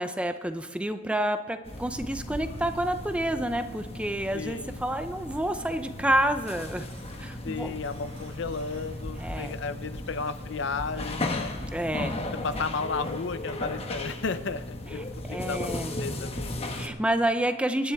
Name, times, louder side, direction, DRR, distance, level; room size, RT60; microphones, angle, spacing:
voice 1, 0.0-6.9 7.2-7.7 9.2-9.6 11.7-12.2 15.3-15.9 16.7-17.9, right 1 dB, 5° right, 8 dB, 0.6 m, -29 dB
sound 1, 1.6-16.9, left 1 dB, 30° left, 1.1 m, -36 dB
voice 2, 4.3-4.7 7.4-11.6 12.4-16.6, left 4 dB, 60° left, 12 dB, 0.6 m, -34 dB
sound 2, 6.6-13.6, right 1 dB, 75° right, 3.2 m, -52 dB
24.0 x 10.5 x 3.6 m, 1.5 s
head